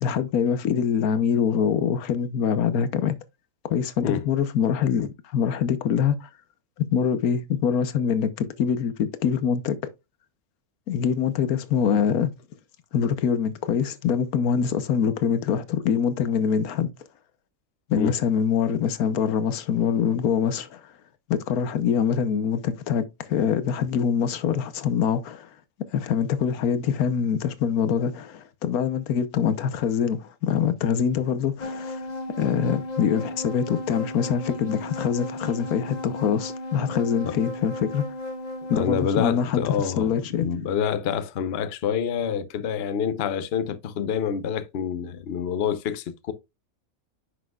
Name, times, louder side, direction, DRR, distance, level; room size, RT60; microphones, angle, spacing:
voice 1, 0.0-3.1 3.7-6.3 6.8-9.7 10.9-12.3 12.9-16.9 17.9-20.8 21.3-25.5 25.9-32.0 32.4-38.0 38.7-40.5, left 7 dB, 90° left, 1.3 m, -24 dB
sound 1, 31.6-39.1, left 1 dB, 30° left, 1.1 m, -35 dB
voice 2, 38.7-40.1 40.4-46.3, left 7 dB, 55° left, 0.9 m, -27 dB
9.6 x 6.1 x 2.3 m
omnidirectional pair, 1.5 m